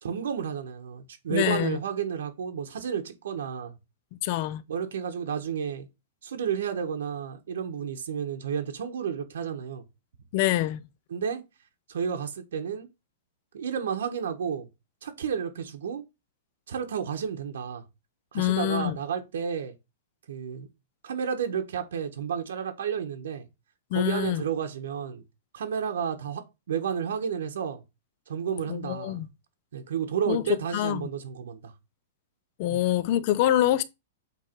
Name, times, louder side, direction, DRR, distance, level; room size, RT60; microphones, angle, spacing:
voice 1, 0.0-3.8 4.7-5.9 6.2-9.8 11.1-11.4 11.9-12.9 13.5-14.7 15.0-16.0 16.7-17.8 18.3-19.7 20.3-20.7 21.0-23.4 23.9-25.2 25.5-26.4 26.7-27.8 28.3-29.2 29.7-31.7 32.7-32.8, right 7 dB, 75° right, 1.2 m, -31 dB
voice 2, 1.3-1.8 4.2-4.6 10.3-10.8 18.3-19.0 23.9-24.4 28.7-29.3 30.3-30.4 30.7-31.1 32.6-33.8, left 13 dB, 30° left, 0.5 m, -25 dB
8.2 x 3.3 x 4.5 m
supercardioid pair, 180°, 0 cm